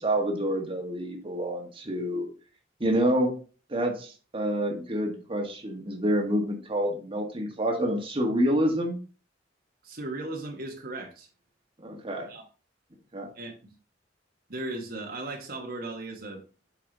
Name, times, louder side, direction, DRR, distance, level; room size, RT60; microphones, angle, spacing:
voice 1, 0.0-2.3 2.8-3.3 3.7-9.0 11.8-12.3 13.1-13.3, equal, 30° right, 2 dB, 1.5 m, -27 dB
voice 2, 9.8-11.3 12.3-12.4 13.3-13.5 14.5-16.4, right 2 dB, 55° right, 1 dB, 1.3 m, -36 dB
8.1 x 4.9 x 3.9 m, 0.36 s
head